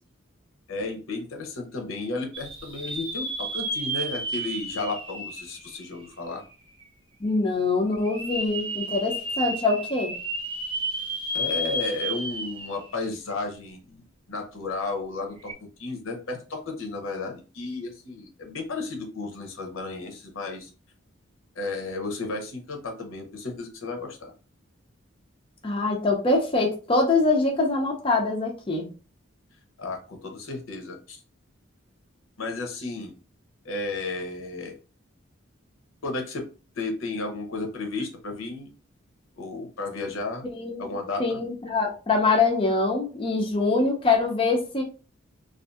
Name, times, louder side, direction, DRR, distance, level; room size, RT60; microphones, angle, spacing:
voice 1, 0.7-6.4 11.3-20.7 21.6-24.3 29.8-31.2 32.4-33.1 33.6-34.8 36.0-36.5 36.8-38.7 39.4-40.5 40.8-41.4, left 3 dB, 85° left, 3 dB, 0.7 m, -33 dB
sound 1, 2.3-6.3 6.8-6.9 8.0-12.9 13.3-13.4 15.4-15.5, right 1 dB, 25° right, 0.5 m, -32 dB
voice 2, 7.2-10.1 25.6-28.9 40.5-40.9 41.2-44.8, left 3 dB, 25° left, 0 dB, 0.4 m, -24 dB
2.6 x 2.4 x 2.3 m, 0.34 s
head